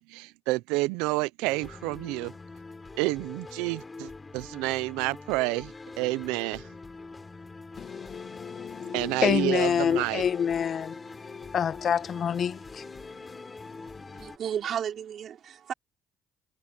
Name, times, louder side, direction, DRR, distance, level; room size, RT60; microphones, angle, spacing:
voice 1, 0.1-2.3 2.9-6.7 8.9-10.2, right 21 dB, 85° right, 0.7 m, -29 dB
sound 1, 1.4-14.4, left 3 dB, 25° left, 3.6 m, -44 dB
voice 2, 7.8-14.2, left 8 dB, 55° left, 1.2 m, -29 dB
voice 3, 14.2-15.7, right 9 dB, 60° right, 3.8 m, -33 dB
supercardioid pair, 65°, 0 cm